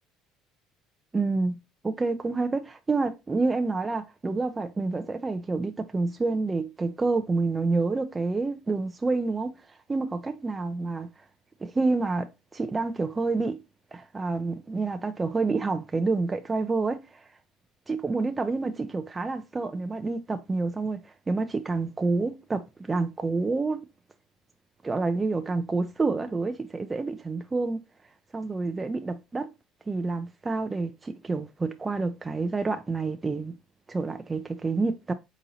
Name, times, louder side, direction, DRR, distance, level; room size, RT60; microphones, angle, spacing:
voice 1, 1.1-1.6 1.8-9.5 9.9-11.1 11.6-13.6 13.9-17.2 17.9-23.8 24.8-27.8 28.3-29.5 29.9-33.6 33.9-35.1, right 3 dB, 20° right, 0.4 m, -28 dB
4.1 x 3.8 x 2.7 m
supercardioid pair, 95°, 0 cm